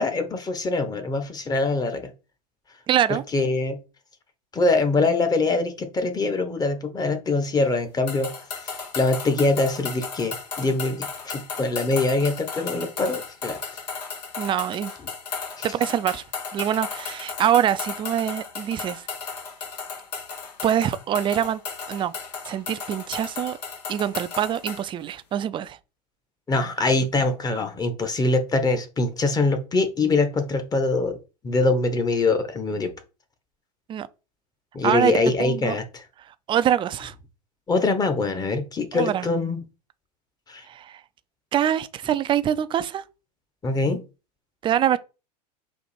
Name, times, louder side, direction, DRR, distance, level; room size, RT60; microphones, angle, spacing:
voice 1, 0.0-2.1 3.3-3.8 4.5-8.3 8.7-13.6 26.5-31.2 31.4-32.9 34.7-36.0 37.7-39.6 40.5-40.6 43.6-44.1, left 3 dB, 20° left, 0.9 m, -23 dB
voice 2, 2.9-3.2 14.4-14.9 15.6-16.2 16.5-19.1 20.6-21.6 21.9-22.1 22.5-23.6 23.9-25.8 33.9-34.1 34.8-35.1 35.4-35.7 36.3-37.1 38.9-39.3 40.7-41.0 41.5-43.0 44.6-45.0, right 10 dB, 25° right, 0.4 m, -24 dB
sound 1, 8.1-24.9, left 5 dB, 80° left, 1.1 m, -35 dB
4.5 x 2.6 x 4.2 m
hypercardioid pair, 95°, 21 cm